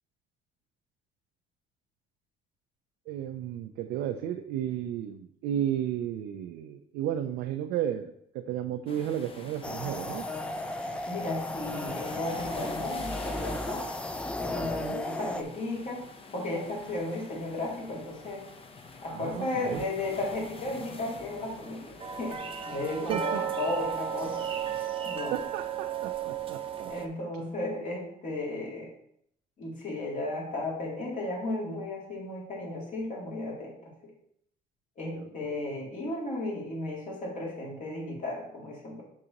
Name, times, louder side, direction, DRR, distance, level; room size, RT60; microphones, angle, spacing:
voice 1, 3.1-10.2 14.8-15.0 19.1-19.9 23.1-23.4 25.3-27.1 35.1-35.6, right 10 dB, 80° right, 6 dB, 0.4 m, -33 dB
sound 1, 8.9-24.9, left 4 dB, 35° left, 0.7 m, -47 dB
sound 2, 9.6-15.4, left 1 dB, 5° left, 0.3 m, -35 dB
voice 2, 11.1-13.8 14.4-16.1 16.3-18.4 19.0-24.5 25.0-25.3 26.9-28.9 29.6-33.9 35.0-39.0, left 2 dB, 50° left, -3 dB, 2.5 m, -34 dB
sound 3, 22.0-27.1, right 8 dB, 30° right, 0.7 m, -34 dB
6.4 x 5.5 x 2.9 m, 0.71 s
cardioid pair, 110°, 17 cm